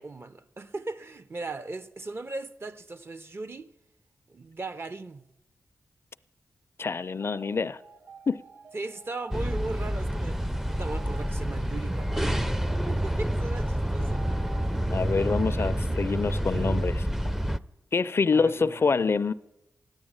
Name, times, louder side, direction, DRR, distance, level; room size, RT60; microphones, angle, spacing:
voice 1, 0.0-3.7 4.3-5.3 8.7-10.4 10.7-12.6 12.9-14.3 18.3-19.1, right 3 dB, 45° right, 0.8 m, -38 dB
voice 2, 6.8-7.8 8.3-8.4 14.9-17.1 17.9-19.3, left 4 dB, 45° left, 0.4 m, -26 dB
sound 1, 7.2-16.9, right 5 dB, 60° right, 1.4 m, -51 dB
sound 2, 9.3-17.6, equal, 5° right, 0.5 m, -28 dB
14.5 x 10.5 x 8.8 m
cardioid pair, 55°, 6 cm